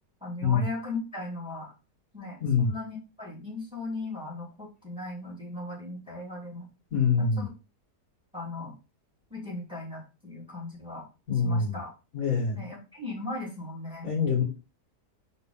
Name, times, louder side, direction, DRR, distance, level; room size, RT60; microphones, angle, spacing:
voice 1, 0.2-1.7 2.1-6.7 7.2-7.4 8.3-8.7 9.3-11.1 11.4-11.9 12.5-14.1, left 2 dB, 5° right, -2 dB, 2.6 m, -38 dB
voice 2, 2.4-2.7 6.9-7.5 11.3-11.8 12.1-12.6 14.0-14.4, left 5 dB, 60° left, 1 dB, 2.0 m, -25 dB
5.2 x 4.1 x 4.9 m, 0.30 s
omnidirectional pair, 1.7 m